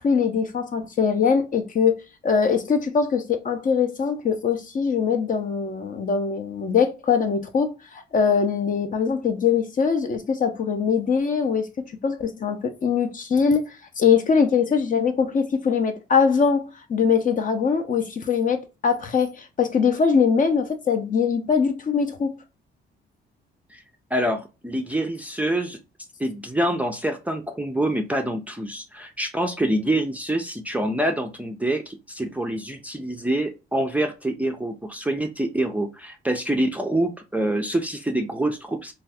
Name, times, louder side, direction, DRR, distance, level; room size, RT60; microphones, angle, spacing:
voice 1, 0.0-11.7 12.0-13.6 14.0-22.3, left 6 dB, 40° left, 0.6 m, -22 dB
voice 2, 24.1-25.8 26.2-38.9, right 1 dB, 5° right, 0.4 m, -26 dB
2.6 x 2.4 x 3.3 m
cardioid pair, 90°, 20 cm